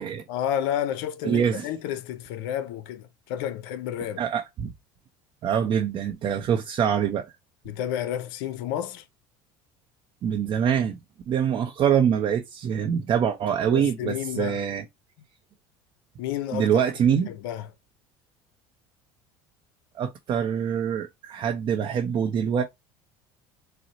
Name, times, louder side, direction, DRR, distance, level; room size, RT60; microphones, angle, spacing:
voice 1, 0.3-4.2 7.7-9.0 13.7-14.6 16.2-16.8 17.3-17.7, left 10 dB, 80° left, 0.5 m, -31 dB
voice 2, 1.2-1.7 4.2-4.7 5.4-7.2 10.2-11.0 11.3-14.8 16.5-17.3 19.9-22.6, right 8 dB, 45° right, 0.6 m, -24 dB
4.0 x 2.0 x 2.5 m
supercardioid pair, 105°, 12 cm